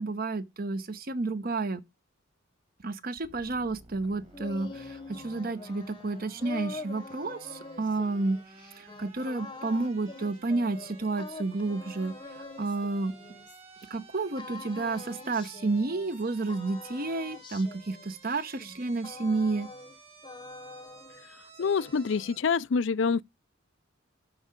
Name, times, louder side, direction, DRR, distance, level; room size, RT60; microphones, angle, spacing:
voice 1, 0.0-1.8 2.8-8.4 8.8-12.1 12.6-13.1 13.9-19.7, right 3 dB, 45° right, 0.9 m, -31 dB
sound 1, 3.2-22.4, right 3 dB, 30° right, 2.0 m, -53 dB
sound 2, 4.0-13.9 14.3-16.2 16.5-20.0 20.2-21.3 21.5-22.5, left 3 dB, 25° left, 0.9 m, -45 dB
voice 2, 21.6-23.2, left 5 dB, 65° left, 0.4 m, -26 dB
12.5 x 4.7 x 5.2 m
head